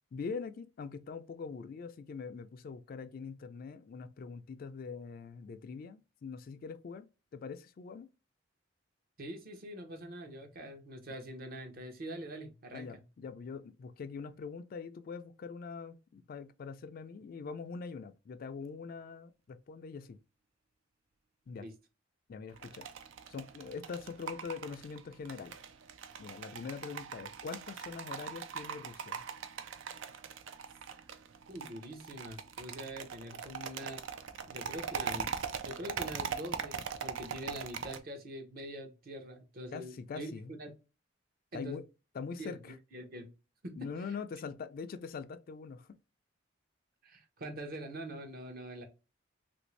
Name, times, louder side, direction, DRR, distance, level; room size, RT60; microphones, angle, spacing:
voice 1, 0.1-8.1 12.7-20.2 21.5-21.7 22.3-22.9 23.3-25.6 26.2-29.2 39.7-40.5 41.5-41.8 42.1-42.7 43.8-46.0, left 5 dB, 50° left, 0.3 m, -43 dB
voice 2, 9.2-13.0 21.6-21.7 31.5-34.0 34.4-35.3 35.6-40.3 40.6-40.7 41.5-41.8 42.4-43.3 43.6-44.2 47.0-48.8, right 1 dB, 50° right, 0.8 m, -44 dB
sound 1, 22.5-38.0, right 6 dB, 75° right, 0.4 m, -41 dB
3.2 x 2.6 x 3.1 m
head